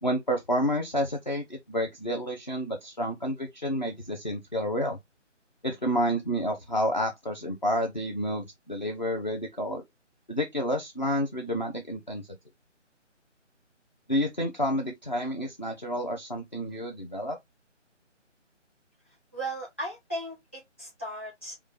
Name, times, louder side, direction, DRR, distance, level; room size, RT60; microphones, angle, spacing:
voice 1, 0.0-5.0 5.6-9.8 10.3-12.3 14.1-17.4, equal, 40° left, 0.5 m, -29 dB
voice 2, 19.3-21.7, right 1 dB, 10° left, 1.0 m, -36 dB
4.8 x 2.2 x 3.2 m
figure-of-eight pair, 175°, 37 cm